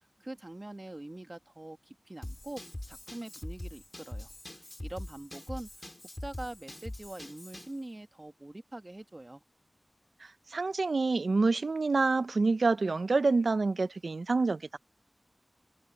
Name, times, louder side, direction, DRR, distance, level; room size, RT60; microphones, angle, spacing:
voice 1, 0.2-5.9 6.2-9.4, right 1 dB, 35° right, 1.7 m, -44 dB
Drum kit / Drum, 2.2-7.8, left 1 dB, 25° left, 2.5 m, -43 dB
voice 2, 10.5-14.8, right 3 dB, 85° right, 0.5 m, -27 dB
wide cardioid pair, 55°, 0 cm